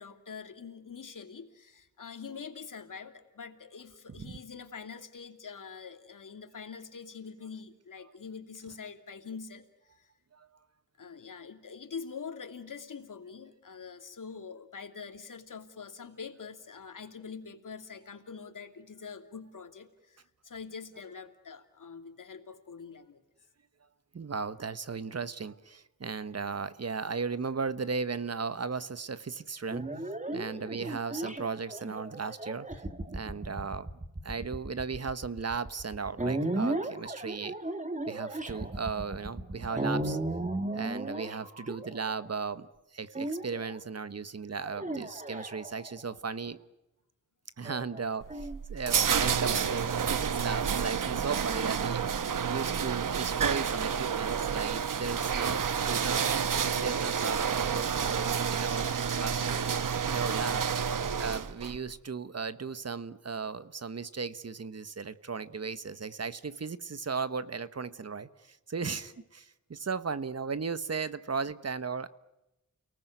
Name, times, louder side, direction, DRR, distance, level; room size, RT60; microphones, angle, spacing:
voice 1, 0.0-9.7 10.0-10.1 11.0-23.2 30.5-30.7, left 5 dB, 75° left, 6 dB, 2.8 m, -44 dB
voice 2, 4.1-4.4 8.0-8.1 8.7-8.9 10.3-10.5 24.1-29.8 30.3-37.6 38.1-40.2 40.7-46.6 47.6-52.0 52.5-56.2 56.8-59.7 60.1-60.7 61.2-72.1, right 5 dB, 50° right, 14 dB, 1.3 m, -36 dB
sound 1, 29.7-42.3 43.1-43.8 44.6-46.1 47.6-49.0, right 2 dB, 25° right, 2.5 m, -35 dB
sound 2, 48.2-61.8, right 7 dB, 80° right, 1.1 m, -29 dB
30.0 x 19.0 x 9.4 m, 0.96 s
wide cardioid pair, 95°, 32 cm